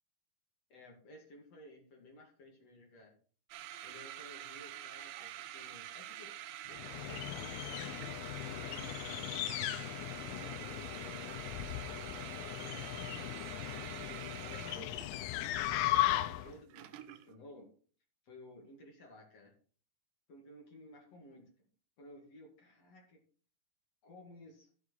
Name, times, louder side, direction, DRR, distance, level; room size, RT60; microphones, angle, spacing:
voice 1, 0.7-3.1 3.8-6.3 6.7-8.1 8.6-9.6 10.1-11.2 12.2-15.1 15.4-17.7 18.2-19.5 20.3-21.5 22.0-23.2 24.0-24.7, left 1 dB, 50° left, 0 dB, 2.1 m, -56 dB
sound 1, 3.5-17.4, right 12 dB, 80° right, 2.6 m, -47 dB
sound 2, 6.7-16.6, left 14 dB, 90° left, 3.3 m, -37 dB
15.0 x 7.3 x 3.2 m, 0.42 s
omnidirectional pair, 5.7 m